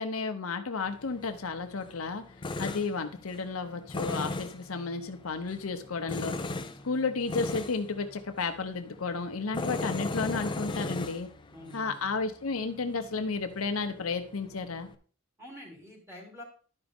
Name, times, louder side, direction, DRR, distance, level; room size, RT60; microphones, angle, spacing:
voice 1, 0.0-2.2 2.6-6.3 6.8-11.3 11.7-14.9, left 4 dB, 90° left, 7 dB, 0.8 m, -32 dB
Tools, 0.8-14.9, left 2 dB, 25° left, 0.5 m, -39 dB
voice 2, 11.5-12.0 15.4-16.4, left 1 dB, 10° right, -2 dB, 2.9 m, -46 dB
11.5 x 4.9 x 3.5 m, 0.42 s
head